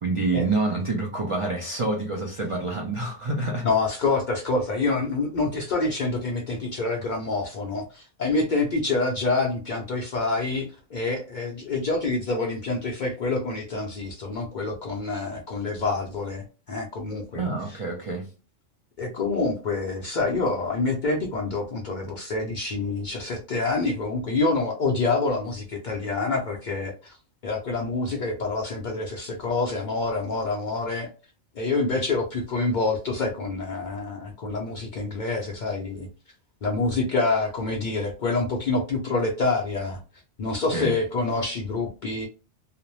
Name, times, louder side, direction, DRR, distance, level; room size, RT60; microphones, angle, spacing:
voice 1, 0.0-3.7 17.3-18.3 40.7-40.9, right 3 dB, 55° right, 0.3 m, -27 dB
voice 2, 3.6-17.8 19.0-27.2 27.4-31.1 31.6-36.1 36.6-40.0 40.4-42.3, left 3 dB, 60° left, 0.5 m, -27 dB
2.5 x 2.0 x 2.9 m
omnidirectional pair, 1.2 m